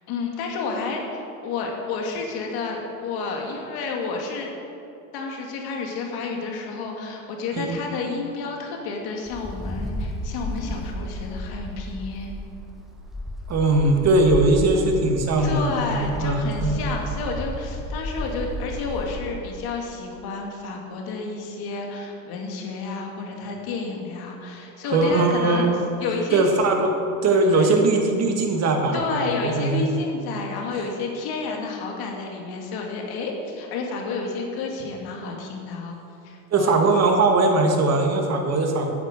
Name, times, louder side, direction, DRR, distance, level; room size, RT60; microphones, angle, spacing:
voice 1, 0.1-4.5 5.1-12.3 15.4-25.7 26.0-26.4 27.4-27.7 28.9-36.0 36.2-36.7, left 4 dB, 55° left, 1 dB, 2.4 m, -30 dB
Wind, 9.3-19.3, left 1 dB, ahead, 1.6 m, -33 dB
voice 2, 13.5-16.8 24.9-25.8 26.3-26.9 27.2-29.9 36.5-38.9, right 2 dB, 35° right, 3 dB, 1.9 m, -20 dB
9.5 x 8.2 x 6.7 m, 2.7 s
hypercardioid pair, 95°, 44 cm